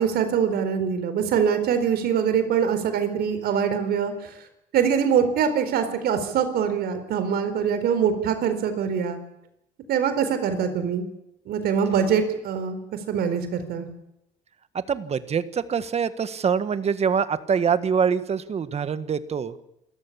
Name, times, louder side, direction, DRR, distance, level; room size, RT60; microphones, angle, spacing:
voice 1, 0.0-4.3 4.7-9.2 9.9-11.1 11.5-12.8 13.1-13.9, right 7 dB, 70° right, 9 dB, 4.3 m, -23 dB
voice 2, 14.7-19.6, right 6 dB, 40° right, 12 dB, 1.7 m, -24 dB
27.5 x 14.5 x 8.7 m, 0.82 s
cardioid pair, 110°, 17 cm